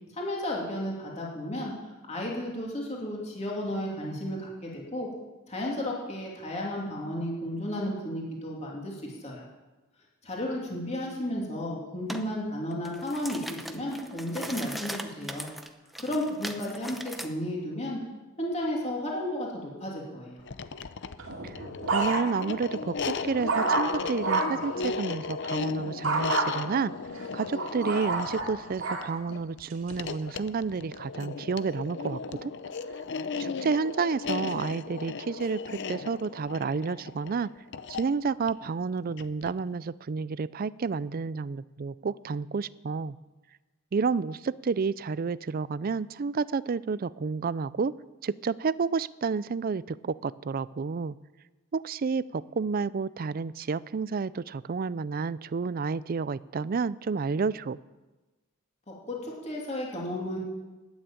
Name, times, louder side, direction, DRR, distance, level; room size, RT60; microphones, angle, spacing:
voice 1, 0.1-1.7 2.1-5.1 5.5-9.4 10.2-15.5 16.0-18.0 18.4-20.4 58.9-60.4, left 1 dB, 30° left, -3 dB, 3.0 m, -33 dB
sound 1, 12.1-12.3 12.7-17.3, equal, ahead, 0.8 m, -39 dB
sound 2, 20.4-39.7, left 4 dB, 55° left, 0.6 m, -36 dB
sound 3, 21.2-22.5 23.0-24.7 26.0-26.5 27.1-29.1 29.7-30.1, right 3 dB, 65° right, 2.6 m, -29 dB
voice 2, 21.9-26.9 27.3-32.5 33.4-37.5 37.9-43.2 43.9-47.9 48.2-51.2 51.7-57.8, right 5 dB, 45° right, 18 dB, 0.4 m, -30 dB
12.0 x 9.6 x 9.0 m, 1.2 s
head